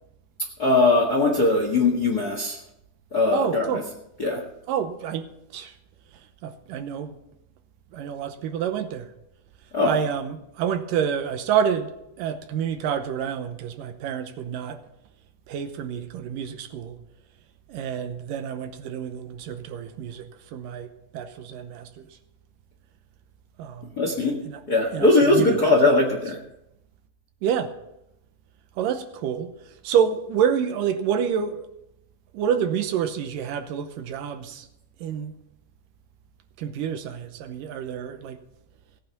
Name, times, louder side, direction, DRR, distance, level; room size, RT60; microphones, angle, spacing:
voice 1, 0.6-2.6 3.1-3.8 4.2-4.4 9.7-9.9 24.0-24.4 24.7-26.4, left 2 dB, 40° left, 1.4 m, -20 dB
voice 2, 3.3-3.9 4.7-5.7 6.4-7.2 7.9-9.1 9.8-14.8 15.5-17.0 17.7-22.1 23.6-23.9 24.5-24.6 24.9-25.6 25.8-26.0 27.4-27.7 28.8-31.7 32.3-34.7 35.0-35.3 36.6-38.4, right 8 dB, 75° right, 2.4 m, -28 dB
17.0 x 9.0 x 5.9 m
omnidirectional pair, 4.1 m